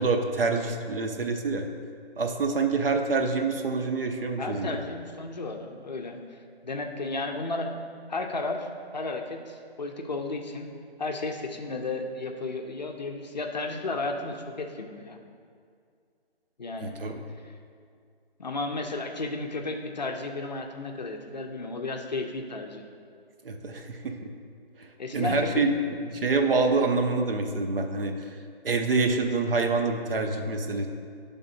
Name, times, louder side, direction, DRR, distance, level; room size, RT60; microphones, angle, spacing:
voice 1, 0.0-1.7 2.2-4.8 16.8-17.1 23.4-24.3 24.8-28.4 28.6-30.9, right 3 dB, 60° right, 4 dB, 0.7 m, -26 dB
voice 2, 4.4-6.4 6.6-7.8 8.1-10.7 11.0-15.2 16.6-17.0 17.4-17.5 18.4-22.8 25.0-25.7, left 3 dB, 45° left, 3 dB, 0.5 m, -33 dB
9.3 x 3.6 x 4.0 m, 2.2 s
figure-of-eight pair, 155°, 32 cm